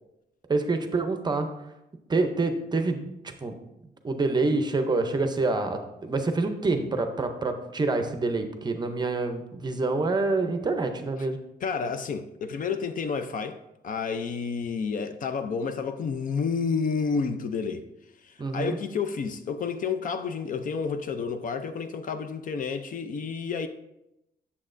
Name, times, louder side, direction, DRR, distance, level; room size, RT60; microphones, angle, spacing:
voice 1, 0.5-1.5 2.1-3.5 4.0-11.4 18.4-18.8, right 3 dB, 25° right, 0.6 m, -27 dB
voice 2, 11.6-13.6 13.8-17.8 18.2-23.7, left 5 dB, 50° left, 0.5 m, -30 dB
8.6 x 7.1 x 2.5 m
wide cardioid pair, 180°, 17 cm